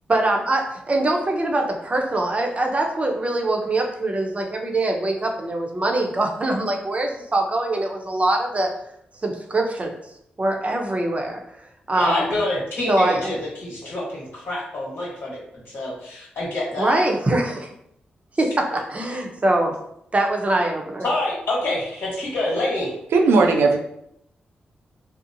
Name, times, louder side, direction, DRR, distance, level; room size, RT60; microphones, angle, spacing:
voice 1, 0.1-8.7 9.2-9.9 10.4-11.4 11.9-12.4 12.9-13.3 16.8-17.7 18.4-19.7 20.1-21.1, right 2 dB, 35° right, 2 dB, 0.6 m, -23 dB
voice 2, 11.9-15.4 15.7-17.0 21.0-22.9, left 1 dB, 75° left, -7 dB, 1.1 m, -26 dB
voice 3, 23.1-23.8, right 3 dB, 80° right, 3 dB, 0.4 m, -16 dB
2.6 x 2.0 x 2.6 m, 0.75 s
supercardioid pair, 45°, 4 cm